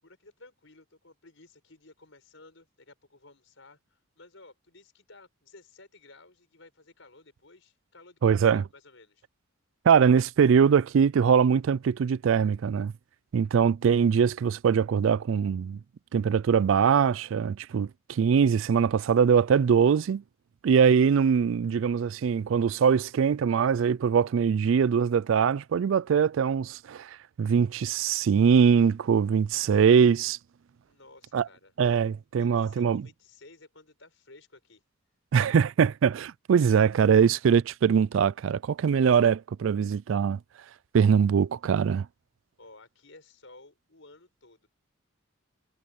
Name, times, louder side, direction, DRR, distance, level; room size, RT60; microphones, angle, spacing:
voice 1, 0.0-9.2 30.9-31.7 32.4-34.8 42.6-44.7, left 2 dB, 65° left, 6.8 m, -54 dB
voice 2, 8.2-8.6 9.9-12.9 13.3-15.8 16.1-20.2 20.6-30.4 31.3-31.5 31.8-33.1 35.3-40.4 40.9-42.1, right 7 dB, 65° right, 0.3 m, -22 dB
head